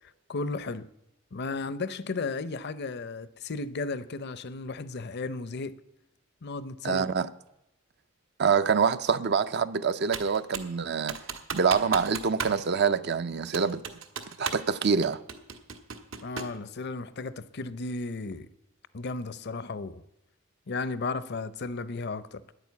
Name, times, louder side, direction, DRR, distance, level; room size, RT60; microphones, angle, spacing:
voice 1, 0.3-0.9 1.3-5.7 6.4-7.0 16.2-18.5 18.9-20.0 20.7-22.4, left 3 dB, 55° left, 0.6 m, -34 dB
voice 2, 6.8-7.3 8.4-11.2 11.5-13.8 14.4-15.2, right 6 dB, 55° right, 0.5 m, -25 dB
Computer keyboard, 10.1-10.8 11.1-12.6 12.9-13.0 13.5-14.7 15.0-16.6, right 5 dB, 75° right, 1.3 m, -36 dB
10.5 x 9.1 x 8.3 m
head